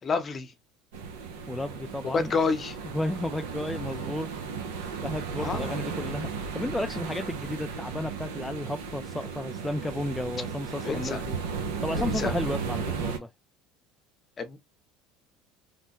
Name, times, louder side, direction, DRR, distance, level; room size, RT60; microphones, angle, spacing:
voice 1, 0.0-0.5 2.0-2.8 5.4-5.8 10.8-11.2 11.9-12.3 14.4-14.6, left 4 dB, 35° left, 0.8 m, -29 dB
sound 1, 0.9-13.2, right 5 dB, 85° right, 0.7 m, -35 dB
voice 2, 1.5-2.3 2.9-4.3 4.6-11.4 11.8-13.3, left 1 dB, 5° left, 0.3 m, -33 dB
3.2 x 2.1 x 2.9 m
hypercardioid pair, 85°, 0 cm